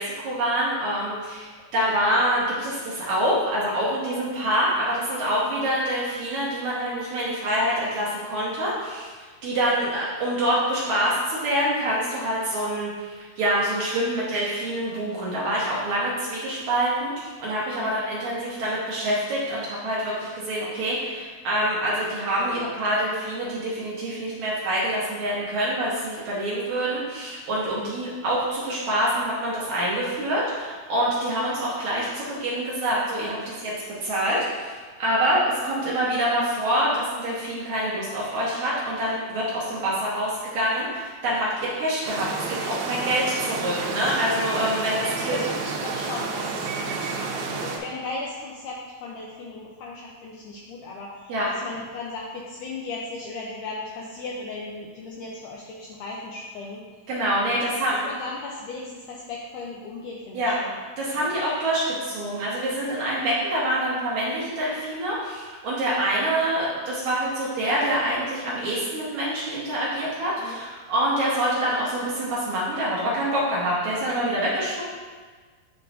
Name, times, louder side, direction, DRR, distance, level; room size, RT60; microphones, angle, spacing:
voice 1, 0.0-9.1 9.4-33.7 34.0-45.4 51.3-51.5 57.1-58.0 60.3-60.5 61.0-74.8, right 1 dB, 65° right, -7 dB, 1.9 m, -26 dB
sound 1, 42.1-47.8, right 4 dB, 85° right, 2.5 m, -30 dB
voice 2, 45.1-56.8 57.4-57.7 58.0-60.8 61.2-61.3 70.4-70.6, left 3 dB, 85° left, -3 dB, 1.8 m, -37 dB
9.5 x 4.7 x 2.6 m, 1.5 s
omnidirectional pair, 4.3 m